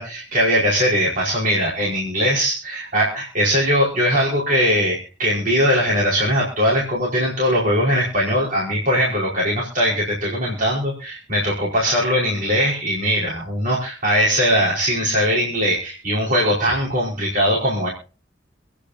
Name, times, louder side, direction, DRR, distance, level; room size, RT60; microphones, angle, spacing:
voice 1, 0.0-17.9, equal, 50° right, -5 dB, 5.0 m, -20 dB
27.0 x 10.0 x 2.8 m, 0.36 s
head